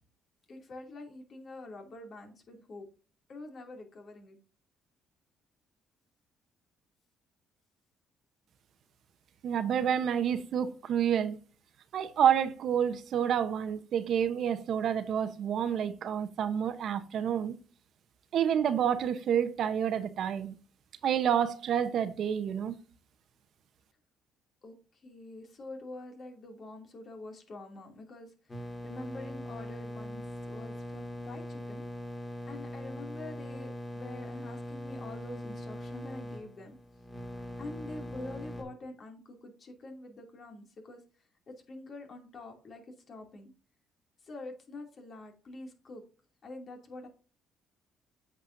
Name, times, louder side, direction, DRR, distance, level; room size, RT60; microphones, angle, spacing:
voice 1, 0.5-2.8 3.3-4.4 24.6-28.6 28.8-31.9 32.5-36.8 37.4-41.0 41.5-43.5 44.2-46.0 46.4-47.1, left 2 dB, 50° left, 2.6 m, -46 dB
voice 2, 9.4-11.4 11.9-17.5 18.3-20.5 21.0-22.8, right 8 dB, 65° right, 0.9 m, -29 dB
sound 1, 28.5-38.6, left 1 dB, 20° left, 2.3 m, -41 dB
8.4 x 6.1 x 2.6 m
supercardioid pair, 70°, 0 cm